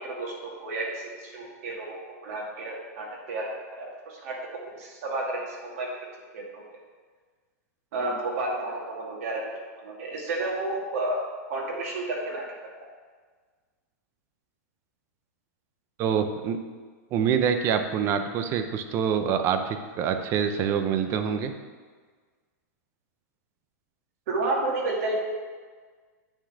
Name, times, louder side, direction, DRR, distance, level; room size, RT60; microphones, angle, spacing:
voice 1, 0.0-2.0 2.2-4.4 4.8-5.9 6.3-6.6 7.9-9.4 9.8-12.4 24.3-25.1, right 2 dB, 55° right, -3 dB, 2.3 m, -31 dB
voice 2, 16.0-16.6 17.1-21.5, right 7 dB, 30° right, 7 dB, 0.6 m, -26 dB
9.0 x 4.0 x 6.3 m, 1.5 s
supercardioid pair, 155°, 9 cm